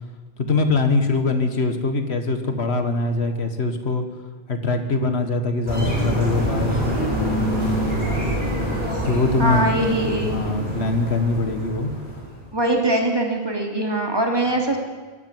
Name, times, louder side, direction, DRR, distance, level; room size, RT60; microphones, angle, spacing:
voice 1, 0.4-4.0 4.5-7.4 9.0-9.7 10.2-11.9, left 3 dB, 80° left, 7 dB, 2.0 m, -23 dB
sound 1, 5.7-12.4, equal, 50° right, 8.0 m, -25 dB
voice 2, 9.4-10.4 12.5-14.8, right 1 dB, 25° right, 2 dB, 3.1 m, -22 dB
24.5 x 12.5 x 9.9 m, 1.4 s
omnidirectional pair, 1.1 m